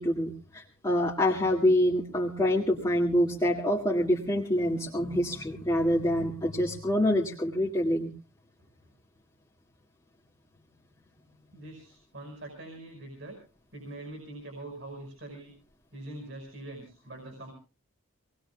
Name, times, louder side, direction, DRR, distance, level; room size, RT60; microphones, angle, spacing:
voice 1, 0.0-8.1, left 1 dB, 20° left, -4 dB, 2.0 m, -26 dB
voice 2, 11.5-13.4 13.7-15.5 15.9-17.5, right 2 dB, 60° right, 3 dB, 5.5 m, -43 dB
26.0 x 20.5 x 2.3 m, 0.34 s
head